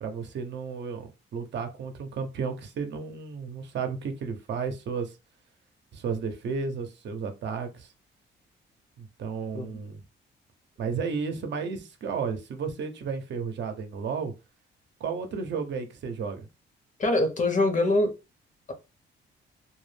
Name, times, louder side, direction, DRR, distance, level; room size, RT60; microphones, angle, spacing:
voice 1, 0.0-5.1 5.9-7.9 9.0-10.0 10.8-14.3 15.0-16.5, right 5 dB, 65° right, 0.6 m, -33 dB
voice 2, 17.0-18.1, left 2 dB, 40° left, 0.8 m, -23 dB
2.2 x 2.0 x 3.2 m
cardioid pair, 90°, 20 cm